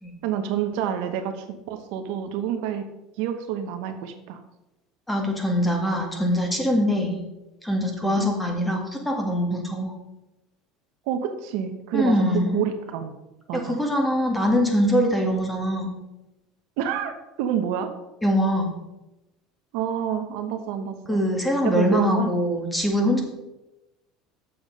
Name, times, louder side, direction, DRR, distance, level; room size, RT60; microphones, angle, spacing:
voice 1, 0.2-2.8 3.2-4.4 8.0-8.3 11.1-13.1 13.5-13.8 16.8-17.9 19.7-21.2 21.6-22.3, right 9 dB, 70° right, 6 dB, 1.0 m, -28 dB
voice 2, 5.1-7.2 7.6-9.9 11.9-12.5 13.5-15.9 18.2-18.7 21.1-23.2, equal, 5° left, 2 dB, 1.9 m, -23 dB
7.0 x 7.0 x 5.3 m, 0.99 s
supercardioid pair, 115°, 0 cm